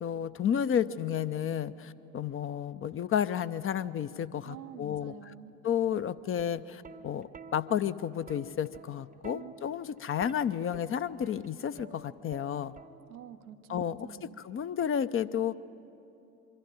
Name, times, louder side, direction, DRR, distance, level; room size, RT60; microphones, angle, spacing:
voice 1, 0.0-5.1 5.6-12.7 13.7-15.5, left 9 dB, 30° left, 13 dB, 0.5 m, -32 dB
voice 2, 4.4-5.6 9.3-9.5 13.1-14.4, right 10 dB, 85° right, 8 dB, 0.7 m, -48 dB
Plucked string instrument, 6.2-13.4 14.5-14.8, right 4 dB, 20° right, 0.7 m, -51 dB
24.0 x 12.0 x 9.0 m, 2.8 s
figure-of-eight pair, 50°, 43 cm